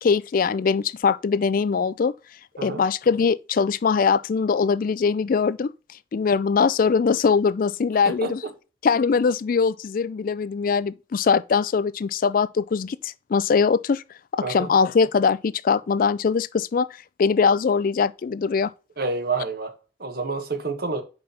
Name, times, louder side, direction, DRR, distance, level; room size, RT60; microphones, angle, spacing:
voice 1, 0.0-2.1 2.6-5.7 6.1-8.4 8.8-14.0 14.5-16.9 17.2-18.7, left 5 dB, 45° left, 0.3 m, -21 dB
voice 2, 8.0-8.3 14.4-14.7 19.0-21.0, right 3 dB, 55° right, 1.5 m, -29 dB
5.3 x 5.2 x 5.7 m
head